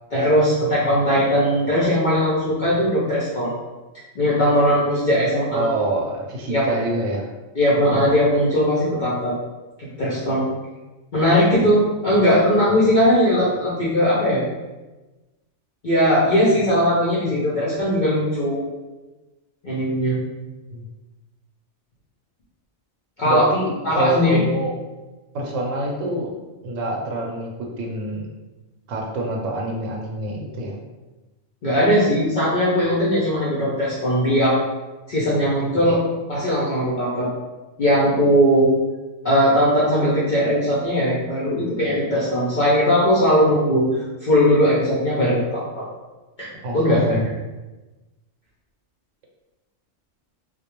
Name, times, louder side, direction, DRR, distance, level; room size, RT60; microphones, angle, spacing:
voice 1, 0.1-3.5 4.1-5.7 6.5-6.7 7.6-9.4 10.0-10.4 11.1-14.4 15.8-18.6 19.6-20.2 23.2-23.5 23.8-24.4 31.6-34.6 35.1-36.0 36.3-37.3 37.8-38.7 39.2-43.8 44.2-45.8 46.4-47.2, equal, 50° left, -8 dB, 0.6 m, -19 dB
voice 2, 5.5-7.3 20.7-20.8 23.2-24.7 25.3-26.3 26.6-28.3 28.9-30.8 46.6-47.0, right 1 dB, 85° right, 0 dB, 0.9 m, -26 dB
2.3 x 2.1 x 2.9 m, 1.1 s
omnidirectional pair, 1.3 m